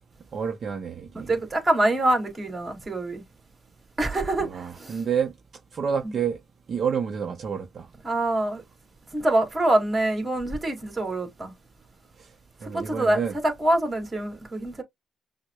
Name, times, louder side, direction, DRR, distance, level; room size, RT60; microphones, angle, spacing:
voice 1, 0.3-1.3 4.4-5.3 5.7-6.4 6.7-7.9 12.2-12.3 12.6-13.4, right 7 dB, 50° right, 0.7 m, -29 dB
voice 2, 1.1-3.2 4.0-5.0 8.0-8.6 9.1-11.5 12.7-13.2 13.6-14.8, right 1 dB, 25° right, 2.0 m, -25 dB
5.9 x 2.1 x 2.2 m
cardioid pair, 90°, 0 cm